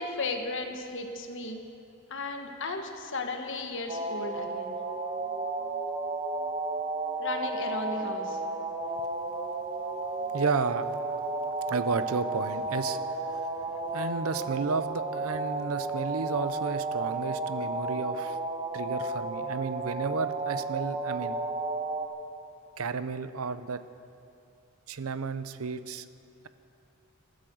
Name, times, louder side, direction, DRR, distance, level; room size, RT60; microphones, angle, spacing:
voice 1, 0.0-1.6 2.1-4.7 7.2-8.4, left 2 dB, 60° left, 4 dB, 1.5 m, -35 dB
sound 1, 3.9-22.1, right 3 dB, 25° right, 1.1 m, -33 dB
voice 2, 10.3-10.9 11.7-18.4 18.7-21.4 22.8-23.8 24.9-26.1, right 4 dB, 75° right, 13 dB, 0.6 m, -32 dB
13.0 x 12.5 x 7.8 m, 2.8 s
head